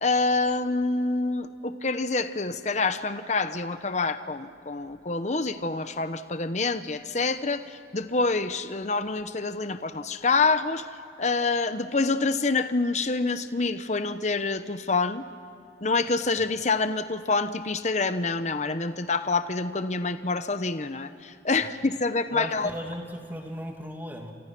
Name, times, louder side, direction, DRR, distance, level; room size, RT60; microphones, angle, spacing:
voice 1, 0.0-10.9 11.2-15.2 15.8-22.7, left 3 dB, 35° left, 10 dB, 0.9 m, -27 dB
voice 2, 22.3-24.3, equal, 10° right, 2 dB, 2.5 m, -37 dB
29.5 x 27.5 x 6.1 m, 2.7 s
head